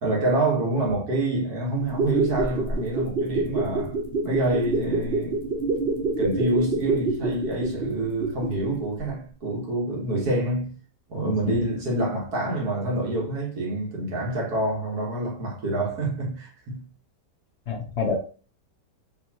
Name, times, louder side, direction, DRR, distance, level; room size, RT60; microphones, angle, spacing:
voice 1, 0.0-4.0 4.2-5.4 6.2-10.8 11.1-16.9, right 2 dB, 65° right, 2.0 m, -27 dB
sound 1, 1.8-8.7 9.0-9.1, right 3 dB, 45° right, 0.9 m, -26 dB
voice 2, 11.2-11.6 17.7-18.2, left 5 dB, 55° left, 0.8 m, -28 dB
4.6 x 3.4 x 2.9 m
omnidirectional pair, 1.8 m